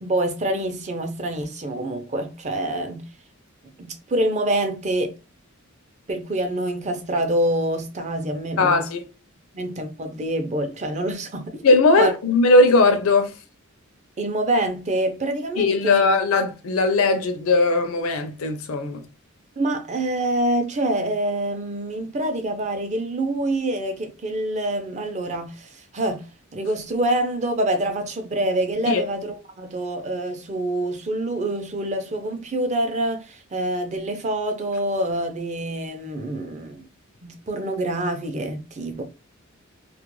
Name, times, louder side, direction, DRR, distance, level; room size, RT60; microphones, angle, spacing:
voice 1, 0.0-3.1 3.8-5.2 6.1-8.9 9.5-11.6 12.0-12.1 14.2-16.0 19.6-36.9 37.2-39.0, right 1 dB, 35° right, 0.5 m, -26 dB
voice 2, 8.6-9.1 11.6-13.4 15.6-19.1 28.9-29.0, left 3 dB, 80° left, 0.5 m, -19 dB
2.4 x 2.1 x 3.0 m
head